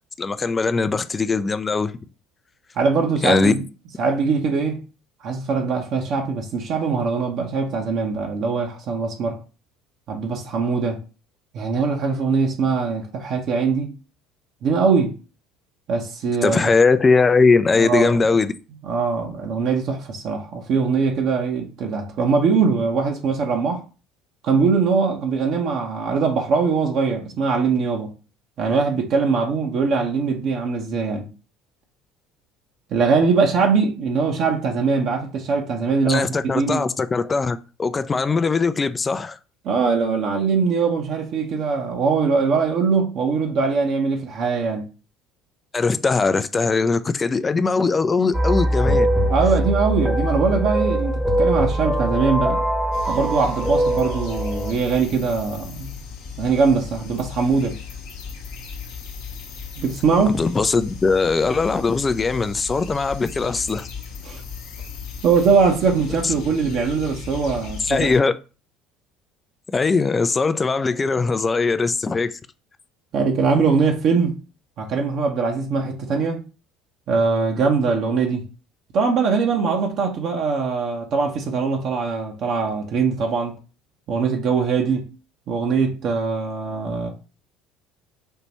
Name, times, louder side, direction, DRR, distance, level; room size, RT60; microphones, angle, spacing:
voice 1, 0.2-1.9 3.2-3.5 16.4-18.5 36.0-39.4 45.7-49.1 60.3-63.9 66.2-66.3 67.8-68.3 69.7-72.4, left 4 dB, 25° left, 0.4 m, -20 dB
voice 2, 2.8-3.6 4.0-4.8 5.2-9.4 10.1-11.0 11.5-13.9 14.6-15.1 15.9-16.6 17.7-18.2 18.9-23.8 24.4-28.1 28.6-31.3 32.9-36.3 36.5-36.9 39.6-44.9 49.3-51.1 51.4-52.6 53.1-56.0 56.4-57.8 59.8-60.4 64.2-64.4 65.2-68.1 73.1-74.4 74.8-76.4 77.1-78.5 78.9-83.5 84.1-85.1 85.5-87.1, right 5 dB, 50° right, 0.9 m, -21 dB
sound 1, 48.3-54.7, equal, 10° right, 1.0 m, -22 dB
sound 2, 52.9-68.2, left 6 dB, 55° left, 0.9 m, -36 dB
5.5 x 3.0 x 3.0 m
figure-of-eight pair, 60°, 0 cm